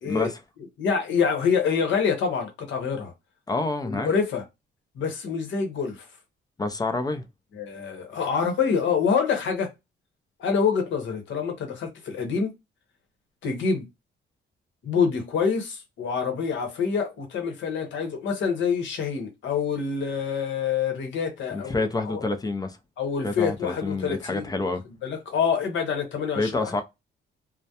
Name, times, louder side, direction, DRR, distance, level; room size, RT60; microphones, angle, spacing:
voice 1, 0.8-3.1 3.8-4.4 5.0-6.1 7.5-9.7 10.4-12.5 13.4-13.8 14.8-22.2 23.0-24.7 25.0-26.8, left 6 dB, 70° left, 0.9 m, -26 dB
voice 2, 3.5-4.1 6.6-7.2 21.5-22.8 23.2-24.8 26.4-26.8, left 3 dB, 20° left, 0.4 m, -28 dB
2.3 x 2.1 x 2.7 m
cardioid pair, 90°, 20 cm